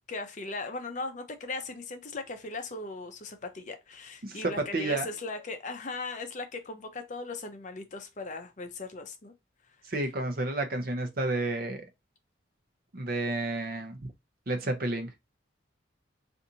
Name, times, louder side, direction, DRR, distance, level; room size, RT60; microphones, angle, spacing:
voice 1, 0.1-9.3, left 3 dB, 40° left, 0.5 m, -38 dB
voice 2, 4.2-5.1 9.9-11.8 12.9-14.0 14.5-15.1, right 2 dB, 50° right, 0.7 m, -30 dB
4.0 x 2.6 x 2.7 m
head